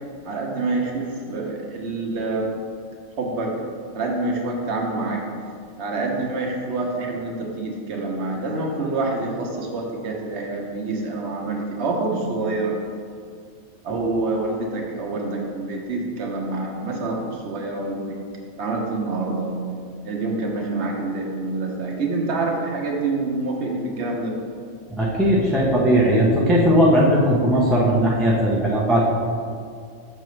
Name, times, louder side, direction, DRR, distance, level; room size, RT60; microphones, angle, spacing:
voice 1, 0.3-2.5 3.2-3.5 3.9-5.2 5.8-12.8 13.8-18.2 18.6-19.6 20.0-24.4, right 3 dB, 55° right, 0 dB, 1.2 m, -26 dB
voice 2, 25.0-29.1, equal, ahead, -5 dB, 0.5 m, -18 dB
6.7 x 6.0 x 3.1 m, 2.2 s
omnidirectional pair, 1.4 m